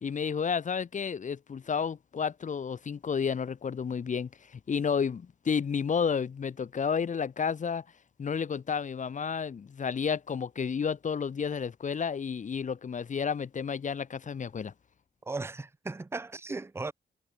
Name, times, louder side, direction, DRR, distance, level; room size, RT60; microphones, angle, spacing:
voice 1, 0.0-7.8 8.2-14.7, left 6 dB, 45° left, 0.8 m, -31 dB
voice 2, 15.2-16.9, right 3 dB, 15° right, 0.5 m, -36 dB
cardioid pair, 85°, 17 cm